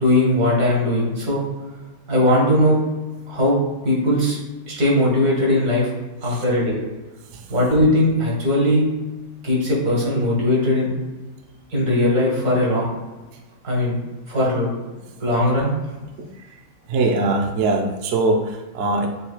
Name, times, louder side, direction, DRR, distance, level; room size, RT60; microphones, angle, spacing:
voice 1, 0.0-1.4 2.1-2.8 3.3-3.6 3.8-4.4 4.7-5.9 6.2-6.8 7.5-8.9 9.4-10.9 11.7-12.9 13.6-14.0 14.3-14.7 15.2-15.7, left 1 dB, 60° right, -4 dB, 2.0 m, -19 dB
voice 2, 16.9-19.1, right 2 dB, 85° right, 4 dB, 0.6 m, -22 dB
6.5 x 2.9 x 2.3 m, 1.2 s
omnidirectional pair, 1.8 m